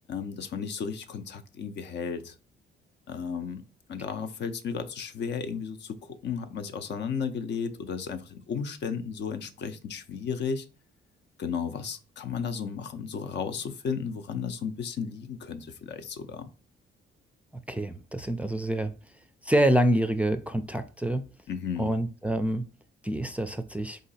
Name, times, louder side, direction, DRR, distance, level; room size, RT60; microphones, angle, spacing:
voice 1, 0.1-2.3 3.1-3.6 3.9-10.7 11.4-16.5 21.5-22.0, left 6 dB, 60° left, 0.6 m, -34 dB
voice 2, 17.7-18.9 19.4-21.3 21.8-22.6 23.0-24.0, right 1 dB, 5° right, 0.4 m, -26 dB
3.9 x 2.8 x 4.1 m
cardioid pair, 90°, 20 cm